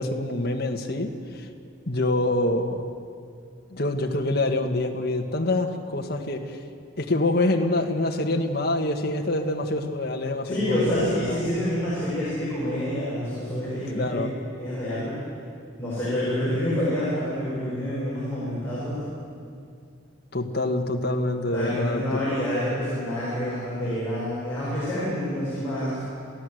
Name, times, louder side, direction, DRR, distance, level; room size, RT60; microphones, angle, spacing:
voice 1, 0.0-1.5 1.9-2.8 3.7-6.6 7.0-11.7 13.9-14.3 20.3-22.4, left 2 dB, 50° left, 3 dB, 1.7 m, -26 dB
voice 2, 10.4-14.2 14.6-15.1 15.8-19.0 21.5-26.0, left 1 dB, 10° left, -11 dB, 7.8 m, -27 dB
27.5 x 16.0 x 7.9 m, 2.3 s
head